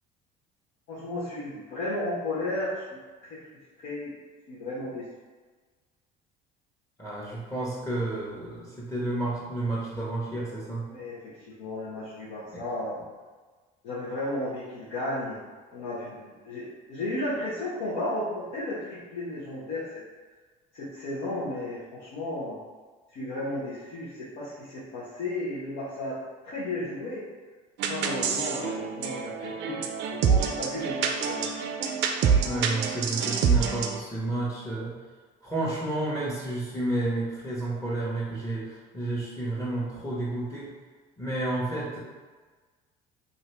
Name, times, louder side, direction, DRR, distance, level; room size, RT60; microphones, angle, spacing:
voice 1, 0.9-3.4 3.8-4.1 4.5-5.1 10.9-13.0 13.8-15.4 15.7-20.0 20.7-22.6 23.1-26.2 26.4-27.2 27.9-31.5, left 1 dB, 70° left, -10 dB, 1.0 m, -34 dB
voice 2, 7.0-10.8 12.5-12.6 32.4-35.0 35.4-40.7 41.2-42.0, right 2 dB, 15° left, -7 dB, 1.1 m, -31 dB
sound 1, 27.8-34.0, right 6 dB, 60° right, 0.4 m, -27 dB
2.7 x 2.6 x 3.3 m, 1.4 s
hypercardioid pair, 70°, 21 cm